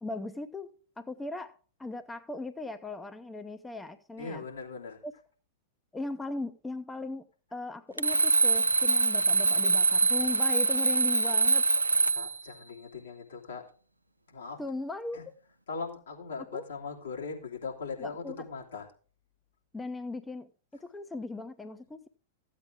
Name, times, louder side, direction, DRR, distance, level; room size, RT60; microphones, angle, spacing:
voice 1, 0.0-4.4 5.0-5.1 5.9-7.2 7.5-11.7 14.6-15.2 16.5-16.7 18.0-18.5 19.7-22.1, left 2 dB, 10° left, 0.7 m, -38 dB
voice 2, 4.2-5.0 12.1-13.6 14.3-14.6 15.1-15.2 15.7-18.9, left 5 dB, 75° left, 3.0 m, -39 dB
Alarm, 8.0-12.4, right 3 dB, 90° right, 0.5 m, -24 dB
14.5 x 8.4 x 3.5 m
figure-of-eight pair, 95°, 0 cm